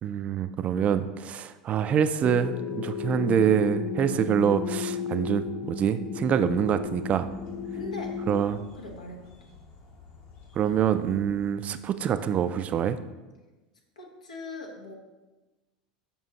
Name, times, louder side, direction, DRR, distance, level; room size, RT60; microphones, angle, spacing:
voice 1, 0.0-7.3 8.3-8.6 10.6-13.0, right 8 dB, 35° right, 11 dB, 0.4 m, -25 dB
Resonant Metallic Drone, 2.2-8.4, left 7 dB, 35° left, 0.4 m, -34 dB
sound 1, 6.4-11.5, left 4 dB, 55° left, 1.1 m, -51 dB
voice 2, 7.7-8.2 8.5-9.5 14.0-14.9, left 2 dB, 85° left, 1 dB, 1.0 m, -41 dB
7.0 x 5.3 x 2.8 m, 1.2 s
hypercardioid pair, 80°, 4 cm